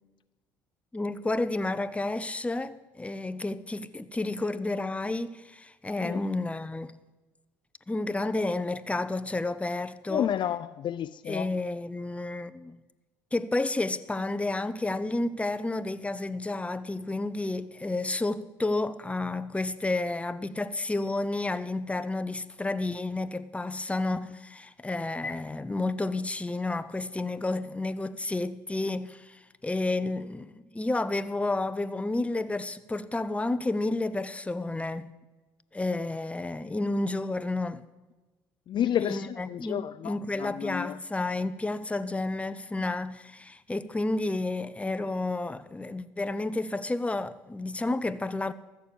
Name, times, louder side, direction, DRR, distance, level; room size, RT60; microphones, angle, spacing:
voice 1, 0.9-6.9 7.9-10.3 11.3-12.8 13.3-35.1 35.7-37.8 39.0-48.5, left 2 dB, 10° left, 0.7 m, -31 dB
voice 2, 10.1-11.5 38.7-41.0, left 10 dB, 50° left, 0.4 m, -31 dB
14.0 x 6.9 x 8.8 m
hypercardioid pair, 60°, 10 cm